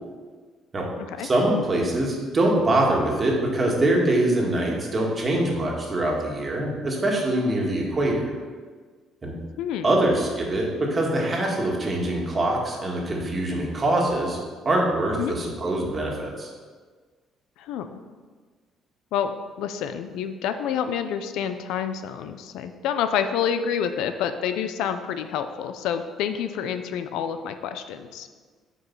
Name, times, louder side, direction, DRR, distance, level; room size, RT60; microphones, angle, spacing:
voice 1, 1.2-8.3 9.2-9.3 9.8-14.4 14.7-16.5, right 1 dB, 25° right, -2 dB, 1.9 m, -23 dB
voice 2, 17.6-18.0 19.1-19.3 19.6-28.3, left 8 dB, 85° left, 9 dB, 0.5 m, -28 dB
7.9 x 5.3 x 5.5 m, 1.5 s
cardioid pair, 115°, 0 cm